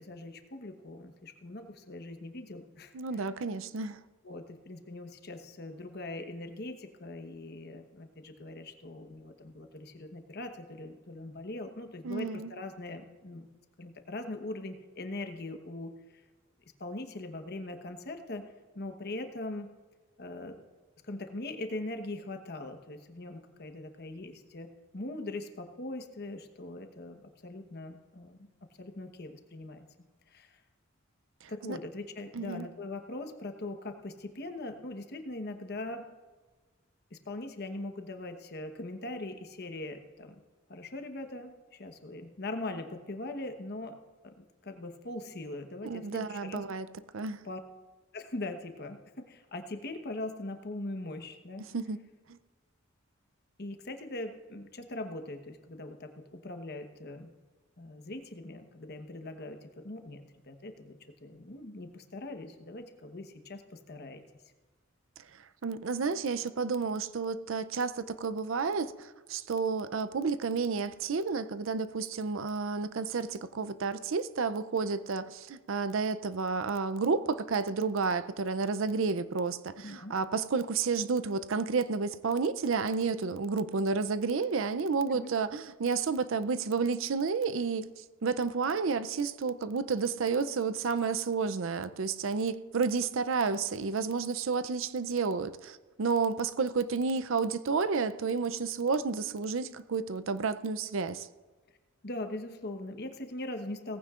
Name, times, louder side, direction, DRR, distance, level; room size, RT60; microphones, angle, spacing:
voice 1, 0.0-3.3 4.2-13.5 13.8-16.2 16.8-18.4 18.7-19.7 20.2-20.6 21.0-28.5 28.8-29.9 30.3-30.6 31.5-36.1 37.1-40.4 40.7-44.0 44.2-44.3 44.6-46.6 47.4-47.6 48.1-51.6 53.6-57.3 57.8-64.2 79.8-80.1 85.1-85.3 102.0-104.0, left 2 dB, 50° left, 6 dB, 1.1 m, -41 dB
voice 2, 2.9-4.0 12.0-12.5 31.4-31.8 32.3-32.7 45.8-46.9 47.1-47.4 51.7-52.0 52.3-52.4 65.3-101.3, right 4 dB, 65° right, 13 dB, 0.5 m, -31 dB
18.0 x 15.0 x 2.5 m, 1.3 s
head